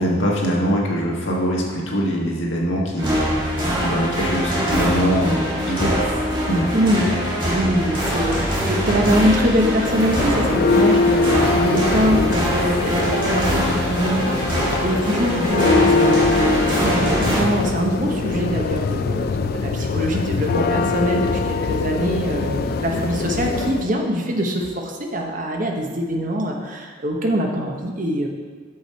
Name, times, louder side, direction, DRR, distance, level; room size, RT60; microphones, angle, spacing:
voice 1, 0.0-3.1 3.8-5.9 6.4-6.7, equal, 85° left, -2 dB, 1.4 m, -22 dB
sound 1, 3.0-17.4, equal, 25° right, 1.6 m, -23 dB
voice 2, 6.7-7.0 7.4-16.1 16.8-28.3, equal, 45° right, 2 dB, 0.9 m, -23 dB
Church bell, 9.6-23.9, left 4 dB, 50° left, 0.3 m, -22 dB
6.6 x 5.6 x 4.4 m, 1.5 s
head